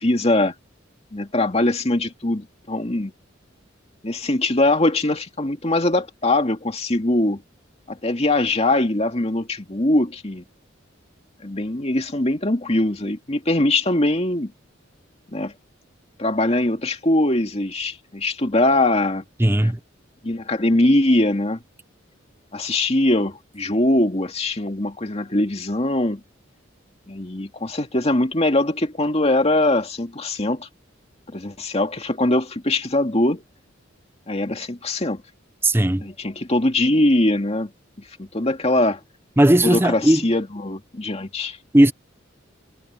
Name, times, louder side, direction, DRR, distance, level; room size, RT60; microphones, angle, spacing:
voice 1, 0.0-0.5 1.1-3.1 4.0-7.4 7.9-10.4 11.4-14.5 15.3-15.5 16.2-19.2 19.6-19.7 20.2-21.6 22.5-26.2 27.1-30.7 31.3-33.4 34.3-35.2 36.0-37.7 38.2-39.0 39.6-41.6, left 1 dB, 30° left, 2.3 m, -22 dB
voice 2, 19.4-19.8 35.6-36.1 39.4-40.2 41.7-41.9, right 1 dB, 10° right, 0.8 m, -16 dB
head